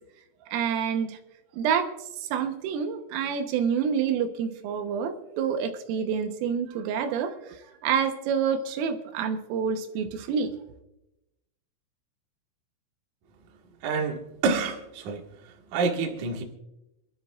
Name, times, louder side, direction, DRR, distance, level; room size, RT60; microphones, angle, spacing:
voice 1, 0.5-1.2 1.5-10.5, right 7 dB, 80° right, 3.6 m, -28 dB
voice 2, 13.8-16.4, right 4 dB, 55° right, 2.3 m, -28 dB
27.0 x 13.0 x 2.4 m
omnidirectional pair, 5.9 m